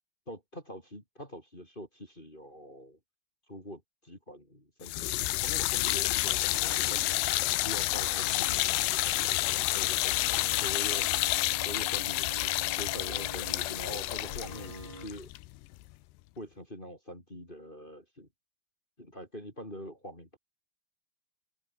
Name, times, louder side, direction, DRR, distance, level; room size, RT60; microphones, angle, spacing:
voice 1, 0.3-3.0 3.5-7.1 7.5-9.3 9.7-10.3 10.6-11.3 11.6-15.3 16.4-18.3 19.0-20.4, equal, 10° left, 3.7 m, -44 dB
sound 1, 4.8-15.9, left 19 dB, 85° left, 2.5 m, -29 dB
sound 2, 6.2-15.1, right 3 dB, 25° right, 4.6 m, -48 dB
open air
omnidirectional pair, 5.9 m